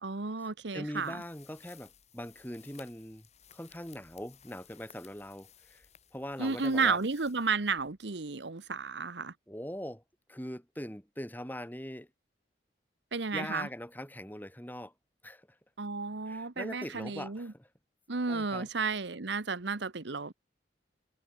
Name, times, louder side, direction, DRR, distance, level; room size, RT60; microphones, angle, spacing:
voice 1, 0.0-1.2 6.4-9.3 13.1-13.7 15.8-17.5 18.1-20.3, right 4 dB, 70° right, 1.1 m, -32 dB
voice 2, 0.7-3.3 3.5-5.9 6.1-7.0 9.5-10.0 10.3-12.1 13.3-14.9 15.2-15.6 16.3-17.7 18.3-18.7, equal, 10° left, 3.6 m, -41 dB
sound 1, 1.0-8.1, left 8 dB, 35° left, 7.2 m, -59 dB
head